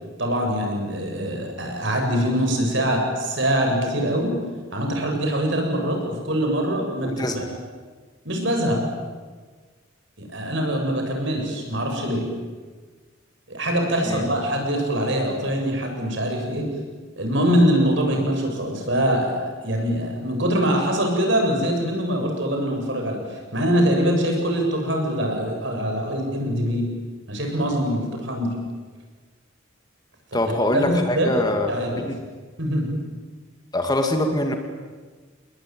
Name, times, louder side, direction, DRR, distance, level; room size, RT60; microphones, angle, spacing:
voice 1, 0.2-4.4 4.7-7.5 8.2-8.8 10.2-12.2 13.5-16.7 17.2-26.9 27.3-28.5 30.4-31.3 31.7-32.0 32.6-32.9, equal, 60° right, 2 dB, 7.4 m, -23 dB
voice 2, 7.0-7.4 14.1-14.3 30.3-31.7 32.0-32.1 33.7-34.5, left 1 dB, 20° left, 5 dB, 2.2 m, -23 dB
29.5 x 21.0 x 9.2 m, 1.5 s
head